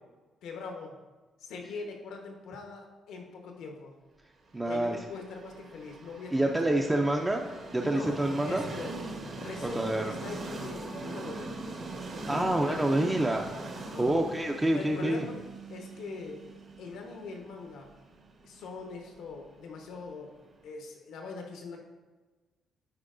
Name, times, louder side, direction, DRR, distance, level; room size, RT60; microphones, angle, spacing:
voice 1, 0.4-1.0 1.4-3.9 4.6-7.3 7.8-8.2 8.4-9.0 9.4-11.8 12.3-13.1 13.9-14.3 14.7-15.4 15.7-16.5 16.8-17.9 18.4-20.4 20.6-21.8, left 4 dB, 85° left, 2 dB, 1.0 m, -42 dB
voice 2, 4.5-5.0 6.3-7.4 7.7-8.6 9.7-10.1 12.3-15.3, right 1 dB, 15° right, 1 dB, 0.4 m, -27 dB
Train, 4.7-20.5, right 2 dB, 55° right, 1.1 m, -42 dB
9.6 x 4.6 x 2.5 m, 1.3 s
cardioid pair, 90°, 0 cm